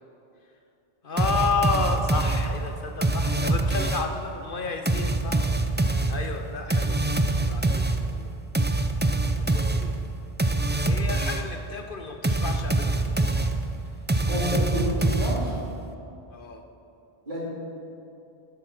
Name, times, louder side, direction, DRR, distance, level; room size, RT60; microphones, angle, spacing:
voice 1, 1.0-5.5 6.1-7.0 7.4-8.3 9.4-9.9 10.9-13.0 16.3-16.6, left 4 dB, 60° left, 4 dB, 1.1 m, -31 dB
sound 1, 1.2-4.2 4.9-11.6 12.2-15.7, right 2 dB, 15° right, 0.4 m, -25 dB
voice 2, 14.2-15.5 17.3-17.4, equal, 50° right, -6 dB, 3.7 m, -29 dB
13.0 x 11.0 x 6.0 m, 2.7 s
omnidirectional pair, 1.1 m